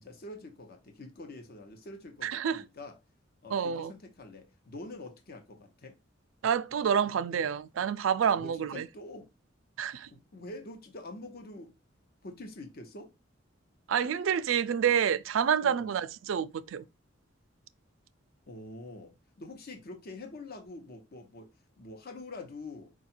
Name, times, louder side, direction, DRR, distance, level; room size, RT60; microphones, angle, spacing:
voice 1, 0.0-3.0 3.4-6.0 8.3-9.3 10.1-11.7 12.2-13.1 15.6-15.9 18.5-19.1 19.4-21.5 21.8-22.9, left 2 dB, 55° left, 0.9 m, -45 dB
voice 2, 2.2-2.6 3.5-3.9 6.4-8.9 9.8-10.1 13.9-16.9, right 8 dB, 90° right, 0.4 m, -28 dB
4.7 x 2.4 x 4.3 m
head